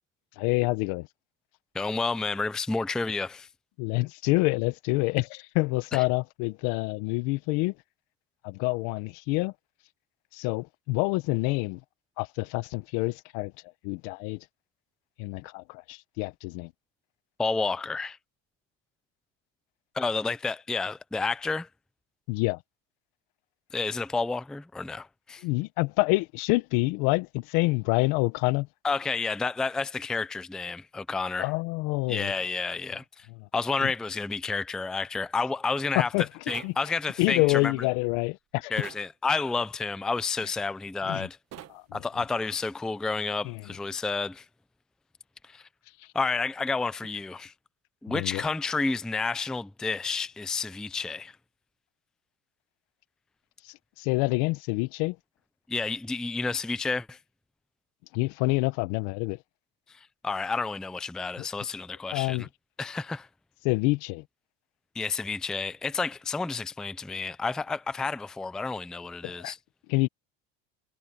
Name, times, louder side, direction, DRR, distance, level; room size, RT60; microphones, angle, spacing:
voice 1, 0.4-1.1 3.8-7.7 8.4-9.5 10.3-11.8 12.2-13.5 13.8-14.4 15.2-16.7 22.3-22.6 25.4-28.7 31.4-32.3 33.8-33.9 35.9-36.3 36.6-36.7 37.2-38.7 41.1-41.3 41.7-41.8 43.4-43.6 48.1-48.4 54.0-55.1 58.1-59.4 61.4-61.5 62.1-62.5 63.6-64.2 69.2-69.5 69.9-70.1, left 24 dB, 65° left, 1.2 m, -27 dB
voice 2, 1.7-3.5 5.9-6.0 17.4-18.2 19.9-21.7 23.7-25.4 28.8-31.5 32.1-33.3 33.5-36.1 36.5-37.7 38.7-41.4 41.9-44.4 45.4-45.7 46.1-47.5 48.0-51.4 55.7-57.2 59.9-62.5 62.8-63.3 64.9-69.6, left 4 dB, ahead, 0.5 m, -30 dB
sound 1, 36.5-36.8 38.8-39.0 41.5-41.8, right 12 dB, 40° right, 1.4 m, -43 dB
supercardioid pair, 125°, 39 cm